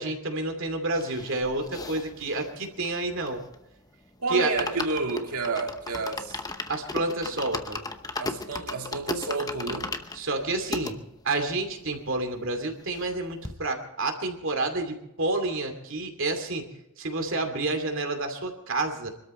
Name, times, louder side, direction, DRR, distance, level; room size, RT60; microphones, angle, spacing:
voice 1, 0.0-3.4 4.3-4.5 6.7-7.8 10.1-11.0 11.2-16.7 17.0-19.1, right 2 dB, 60° right, 2.6 m, -29 dB
sound 1, 0.9-3.7 4.1-4.2 4.4-10.9 11.5-11.6 11.8-11.9 12.2-13.2 13.4-13.6, left 3 dB, 15° left, 0.9 m, -36 dB
voice 2, 4.2-6.4 8.2-9.9, right 3 dB, 80° right, 2.2 m, -30 dB
24.0 x 13.0 x 4.4 m
head